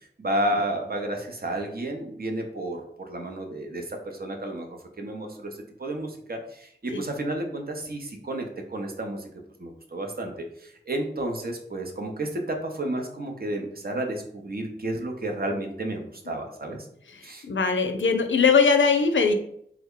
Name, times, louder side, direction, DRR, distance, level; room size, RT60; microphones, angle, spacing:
voice 1, 0.2-4.7 5.0-5.5 5.8-9.3 9.6-10.3 10.6-16.9 17.2-17.5, right 1 dB, 50° right, 2 dB, 0.6 m, -31 dB
voice 2, 17.1-19.3, left 5 dB, 85° left, 6 dB, 0.4 m, -21 dB
3.4 x 2.1 x 3.6 m, 0.71 s
wide cardioid pair, 60°, 19 cm